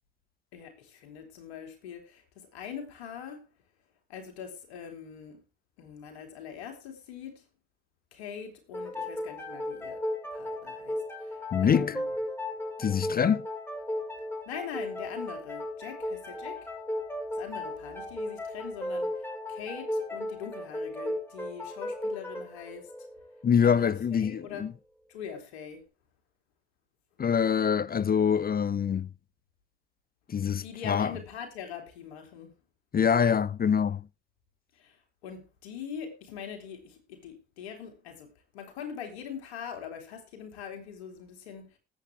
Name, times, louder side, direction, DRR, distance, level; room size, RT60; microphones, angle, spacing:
voice 1, 0.5-3.5 4.1-5.4 5.8-7.4 8.1-10.0 10.3-12.1 14.4-16.7 17.3-23.1 23.6-24.7 25.1-25.8 30.6-32.5 34.7-38.3 38.5-41.8, left 7 dB, 80° left, 2.9 m, -43 dB
sound 1, 8.7-24.1, left 1 dB, 5° left, 5.2 m, -36 dB
voice 2, 11.5-12.0 12.8-13.5 23.4-24.7 27.2-29.1 30.3-31.1 32.9-34.1, left 7 dB, 30° left, 0.5 m, -25 dB
19.5 x 8.2 x 3.5 m
hypercardioid pair, 50°, 32 cm